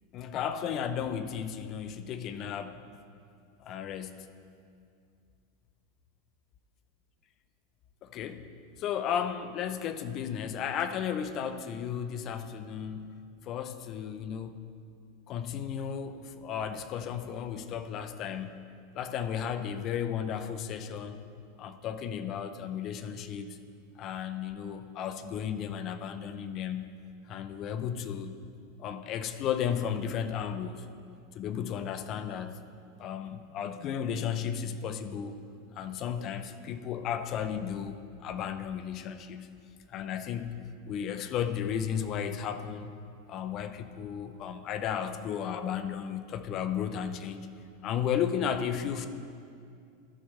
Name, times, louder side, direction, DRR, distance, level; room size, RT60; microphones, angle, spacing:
voice 1, 0.1-2.8 3.6-4.3 8.0-8.5 8.8-13.1 13.4-14.6 15.3-18.6 18.9-21.2 21.6-23.6 24.0-27.0 27.3-28.4 28.8-30.9 31.3-32.6 33.0-35.3 35.7-39.5 39.9-40.5 40.9-42.9 43.3-47.5 47.8-49.1, left 8 dB, 40° left, 10 dB, 0.6 m, -34 dB
13.5 x 6.1 x 3.2 m, 2.3 s
supercardioid pair, 120°, 0 cm